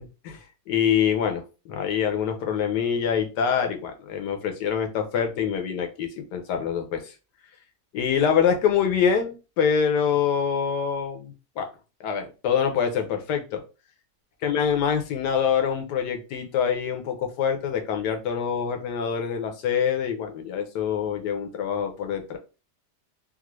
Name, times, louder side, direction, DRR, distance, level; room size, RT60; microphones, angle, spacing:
voice 1, 0.7-7.1 7.9-11.7 12.0-13.6 14.4-22.4, left 7 dB, 80° left, 5 dB, 1.3 m, -25 dB
3.6 x 2.1 x 3.0 m, 0.31 s
omnidirectional pair, 1.8 m